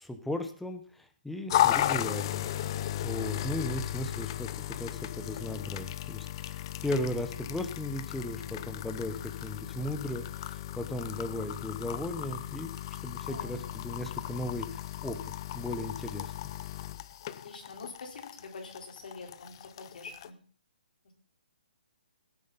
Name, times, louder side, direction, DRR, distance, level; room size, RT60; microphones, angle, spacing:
voice 1, 0.0-2.5 3.0-12.7 13.0-16.3, left 1 dB, ahead, 7 dB, 0.8 m, -36 dB
sound 1, 1.5-20.3, left 12 dB, 30° left, 0.5 m, -35 dB
voice 2, 17.2-20.4 21.0-21.1, left 3 dB, 60° left, 2 dB, 4.0 m, -46 dB
16.5 x 9.2 x 4.0 m, 0.42 s
hypercardioid pair, 170°, 5 cm